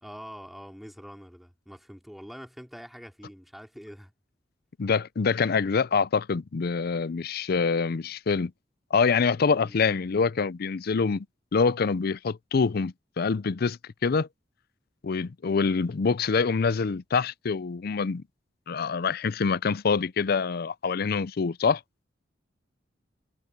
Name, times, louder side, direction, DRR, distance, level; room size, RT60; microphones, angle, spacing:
voice 1, 0.0-4.1 9.6-10.0, equal, ahead, 3.3 m, -45 dB
voice 2, 4.8-8.5 8.9-11.3 11.5-14.3 15.0-18.2 18.7-21.8, left 5 dB, 55° left, 0.5 m, -25 dB
head